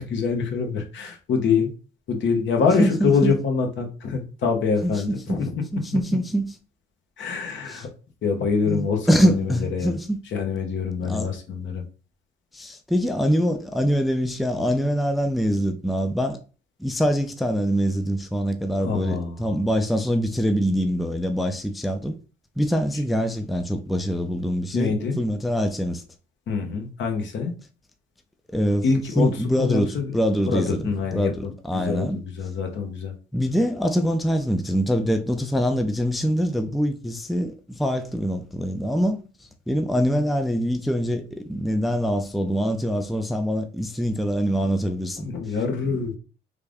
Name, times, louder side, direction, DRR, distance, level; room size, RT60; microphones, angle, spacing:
voice 1, 0.0-1.7 2.1-5.6 7.2-7.9 8.2-9.9 10.3-11.8 18.8-19.5 24.7-25.2 26.5-27.5 28.8-29.3 29.6-30.1 30.4-33.1 45.2-46.2, left 5 dB, 70° left, 1.0 m, -25 dB
voice 2, 2.8-3.3 4.8-4.9 5.3-5.4 5.7-6.6 7.7-7.9 8.7-10.2 11.0-11.3 12.5-16.4 16.8-22.2 22.6-26.0 28.5-28.9 29.2-32.2 33.3-39.2 39.7-45.3, equal, ahead, 0.4 m, -24 dB
3.4 x 2.5 x 3.4 m
cardioid pair, 90°, 20 cm